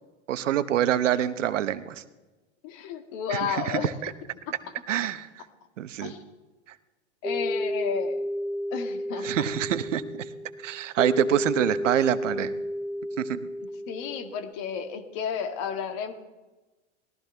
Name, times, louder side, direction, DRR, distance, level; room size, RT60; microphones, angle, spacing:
voice 1, 0.3-2.0 3.3-4.1 4.9-5.3 5.8-6.1 9.2-10.3 10.6-12.5 13.2-13.4, right 11 dB, 85° right, 13 dB, 1.0 m, -26 dB
voice 2, 2.6-3.9 4.6-4.8 6.0-6.2 7.2-8.2 8.7-9.3 13.6-16.1, left 7 dB, 50° left, 7 dB, 2.0 m, -32 dB
sound 1, 7.2-14.5, equal, 5° right, 0.8 m, -32 dB
19.5 x 14.5 x 3.4 m, 1.2 s
hypercardioid pair, 100°, 36 cm